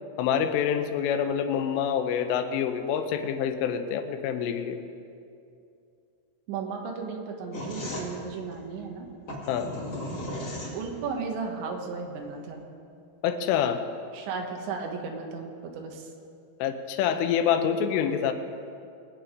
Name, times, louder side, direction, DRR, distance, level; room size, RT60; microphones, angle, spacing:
voice 1, 0.2-4.8 9.5-9.7 13.2-13.8 16.6-18.3, left 8 dB, 80° left, 7 dB, 3.2 m, -26 dB
voice 2, 6.5-9.1 10.7-12.6 14.1-16.1, right 5 dB, 70° right, 2 dB, 3.4 m, -35 dB
sound 1, 7.5-11.2, left 1 dB, 35° left, 1.7 m, -36 dB
21.0 x 8.7 x 5.1 m, 2.5 s
omnidirectional pair, 5.8 m